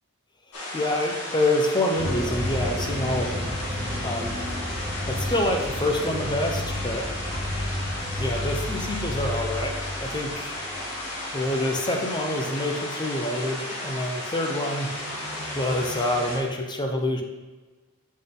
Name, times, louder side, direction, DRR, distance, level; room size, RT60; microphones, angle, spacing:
sound 1, 0.5-16.4, left 1 dB, 80° left, 1.6 m, -34 dB
voice 1, 0.7-3.5 4.0-4.3 5.0-7.1 8.1-10.6 11.3-14.9 15.5-17.2, left 1 dB, 20° left, 2 dB, 0.7 m, -27 dB
sound 2, 2.0-12.0 12.3-12.4 14.8-16.3, left 1 dB, 30° right, 1.0 m, -32 dB
7.3 x 4.0 x 3.8 m, 1.3 s
head